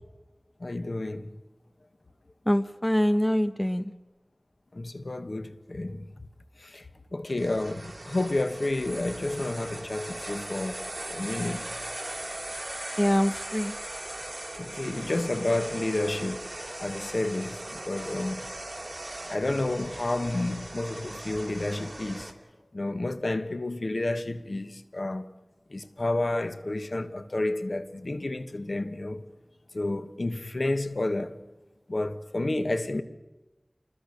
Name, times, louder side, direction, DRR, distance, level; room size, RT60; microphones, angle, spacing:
voice 1, 0.6-1.3 4.7-6.1 6.6-6.9 7.1-10.8 11.1-11.7 14.5-18.4 19.2-22.3 22.7-25.2 25.7-29.2 29.7-31.3 31.9-33.0, left 2 dB, 70° left, 1.3 m, -30 dB
voice 2, 2.5-3.8 13.0-13.7, equal, 15° left, 1.1 m, -24 dB
sound 1, 7.3-22.3, right 1 dB, 50° right, 2.9 m, -39 dB
27.5 x 20.5 x 6.7 m
wide cardioid pair, 40°, 0 cm